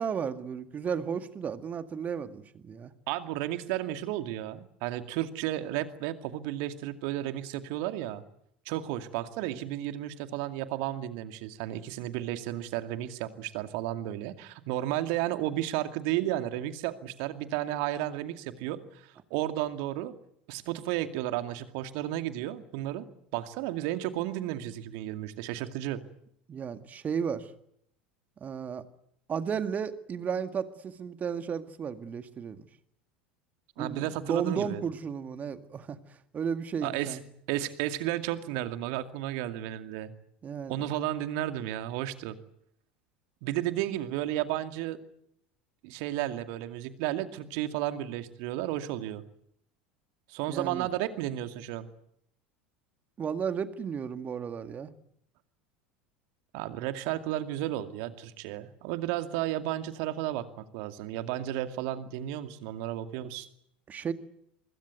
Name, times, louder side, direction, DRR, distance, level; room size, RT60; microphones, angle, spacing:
voice 1, 0.0-2.9 26.5-27.5 28.4-28.8 29.3-32.7 33.8-36.0 36.3-37.2 40.4-40.9 50.5-50.9 53.2-54.9 63.9-64.1, right 7 dB, 30° right, 10 dB, 1.9 m, -33 dB
voice 2, 3.1-8.2 8.7-20.1 20.5-23.0 23.3-26.0 33.8-34.8 36.8-37.2 37.5-40.1 40.7-42.4 43.4-45.0 45.8-49.2 50.3-51.9 56.5-63.5, right 13 dB, 55° right, 9 dB, 2.3 m, -33 dB
25.0 x 21.5 x 9.3 m, 0.74 s
figure-of-eight pair, 75°, 5 cm